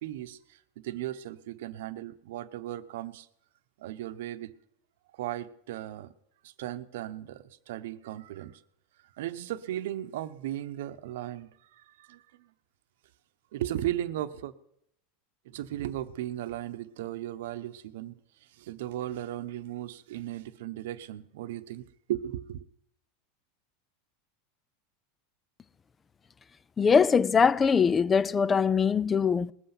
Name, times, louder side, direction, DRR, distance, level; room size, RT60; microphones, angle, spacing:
voice 1, 0.0-3.3 3.8-4.5 5.1-6.1 6.4-8.6 9.2-12.5 13.5-14.5 15.4-22.6, right 13 dB, 75° right, 0.9 m, -36 dB
voice 2, 26.8-29.5, left 6 dB, 25° left, 0.5 m, -22 dB
20.0 x 7.9 x 6.0 m
hypercardioid pair, 100°, 0 cm